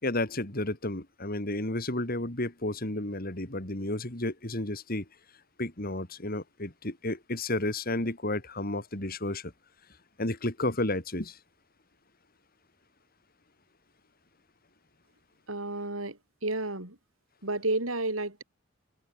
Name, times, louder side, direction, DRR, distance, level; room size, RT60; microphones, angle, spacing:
voice 1, 0.0-5.1 5.6-9.5 10.2-11.4, left 1 dB, 45° left, 3.6 m, -32 dB
voice 2, 15.5-17.0 17.4-18.4, right 2 dB, 85° right, 7.4 m, -31 dB
head